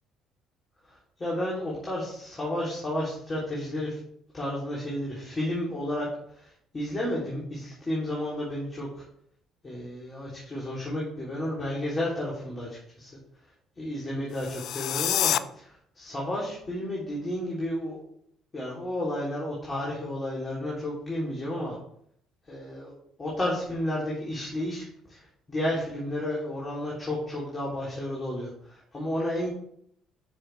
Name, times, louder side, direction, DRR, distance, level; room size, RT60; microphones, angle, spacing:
voice 1, 0.8-4.0 4.3-6.1 6.3-9.0 9.6-13.1 13.8-18.0 18.5-21.8 22.5-22.9 23.2-29.5, left 1 dB, 30° left, -5 dB, 3.3 m, -32 dB
sound 1, 14.3-15.4, left 11 dB, 60° left, 0.4 m, -27 dB
9.2 x 6.4 x 3.5 m, 0.68 s
hypercardioid pair, 55°, 0 cm